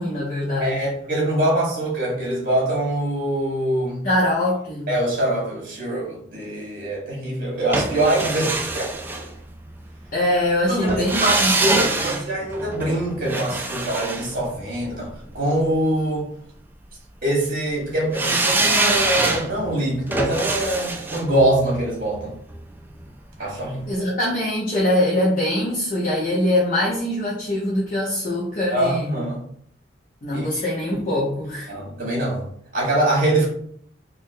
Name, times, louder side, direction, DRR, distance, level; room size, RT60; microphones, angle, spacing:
voice 1, 0.0-0.8 4.0-4.9 10.1-12.2 23.9-29.1 30.2-31.7, left 1 dB, 45° left, -5 dB, 0.8 m, -23 dB
voice 2, 0.6-4.0 4.9-8.9 10.7-15.1 15.3-16.3 17.2-22.3 23.4-23.8 28.7-29.4 30.3-30.6 30.9-31.0 31.7-32.4 32.7-33.5, right 1 dB, 50° right, -3 dB, 1.4 m, -23 dB
sound 1, 7.7-9.8 10.9-15.1 18.1-23.1 23.4-23.5, right 2 dB, 10° right, 0.3 m, -25 dB
3.7 x 2.6 x 2.6 m, 0.64 s
head